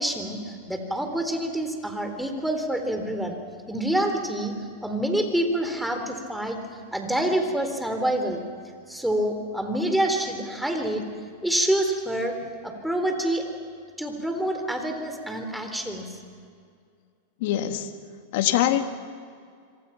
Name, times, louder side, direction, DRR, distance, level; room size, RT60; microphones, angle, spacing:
voice 1, 0.0-3.4 3.7-4.5 4.8-8.4 8.9-11.0 11.4-12.3 12.6-13.4 14.0-16.0, right 1 dB, 5° right, 5 dB, 3.9 m, -27 dB
voice 2, 17.4-17.9 18.3-18.9, left 12 dB, 65° left, 7 dB, 2.0 m, -23 dB
26.0 x 25.5 x 5.9 m, 2.2 s
hypercardioid pair, 110°, 0 cm